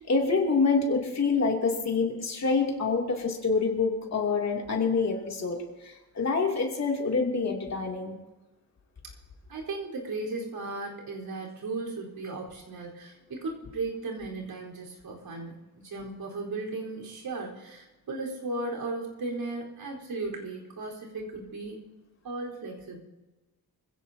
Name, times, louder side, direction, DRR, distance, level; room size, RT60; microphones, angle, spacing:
voice 1, 0.0-5.6 5.8-8.1, left 4 dB, 45° left, 0 dB, 2.9 m, -26 dB
voice 2, 9.5-21.8 22.2-23.0, right 3 dB, 70° right, -2 dB, 4.4 m, -36 dB
26.0 x 16.0 x 2.9 m, 1.1 s
wide cardioid pair, 155°, 37 cm